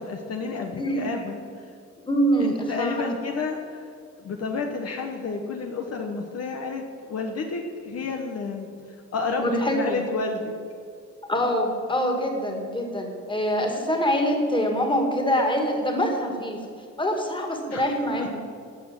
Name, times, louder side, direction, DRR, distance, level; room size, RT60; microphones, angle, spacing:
voice 1, 0.0-1.6 2.4-3.9 4.2-8.7 9.1-10.5 17.7-17.9 18.2-18.3, left 4 dB, 55° left, 3 dB, 1.1 m, -30 dB
voice 2, 0.8-1.1 2.1-3.2 9.4-10.0 11.3-16.6 17.0-18.4, equal, 15° left, 2 dB, 2.4 m, -25 dB
12.5 x 6.3 x 7.5 m, 2.3 s
cardioid pair, 90°, 30 cm